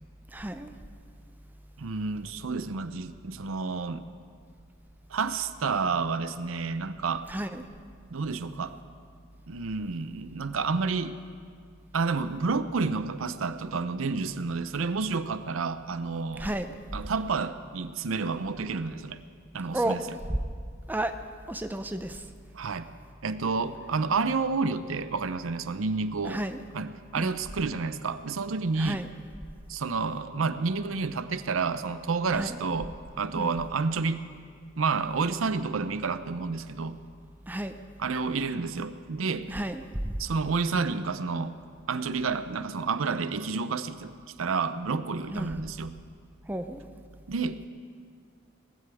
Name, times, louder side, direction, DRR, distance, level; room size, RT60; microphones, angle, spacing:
voice 1, 0.3-0.7 7.3-7.6 16.4-16.7 19.7-20.0 20.3-20.4 20.9-21.1 21.5-22.3 26.2-26.6 27.2-27.4 28.8-29.1 32.3-32.6 33.4-33.5 37.5-37.7 39.5-39.8 45.3-45.6 46.5-46.8, right 1 dB, 10° right, 7 dB, 0.5 m, -32 dB
voice 2, 1.8-4.0 5.1-7.3 8.1-8.8 9.5-11.2 11.9-16.5 16.9-19.2 19.5-20.0 22.5-22.9 23.2-26.4 26.7-29.0 29.7-34.3 34.8-37.0 38.0-39.5 40.2-41.6 41.9-45.9 47.3-47.7, right 4 dB, 90° right, 12 dB, 0.6 m, -30 dB
19.0 x 15.5 x 3.5 m, 2.1 s
head